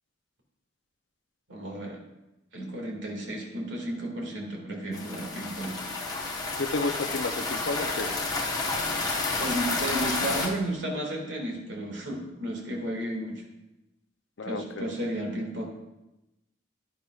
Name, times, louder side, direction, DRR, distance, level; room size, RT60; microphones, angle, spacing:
voice 1, 1.5-2.0 2.5-5.8 9.4-13.4 14.4-15.7, right 1 dB, 65° right, 0 dB, 2.1 m, -33 dB
sound 1, 4.9-10.5, left 3 dB, 20° left, 1.0 m, -30 dB
voice 2, 6.6-8.3 14.4-14.9, left 3 dB, 65° left, 8 dB, 0.6 m, -31 dB
10.5 x 10.5 x 2.4 m, 0.97 s
head